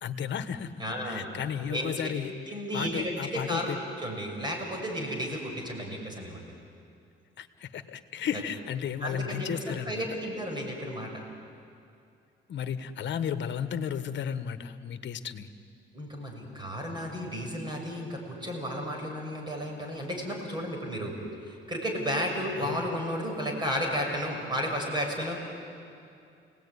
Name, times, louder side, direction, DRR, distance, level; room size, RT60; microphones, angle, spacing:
voice 1, 0.0-0.7 1.0-2.3 2.7-3.8 7.4-10.1 12.5-15.5 22.6-22.9, left 8 dB, 65° left, 11 dB, 1.4 m, -33 dB
voice 2, 0.8-1.3 1.7-2.1 2.5-6.5 9.0-11.2 15.9-21.2 21.4-25.4, equal, 20° right, 1 dB, 6.9 m, -33 dB
30.0 x 18.5 x 9.7 m, 2.5 s
cardioid pair, 90°, 20 cm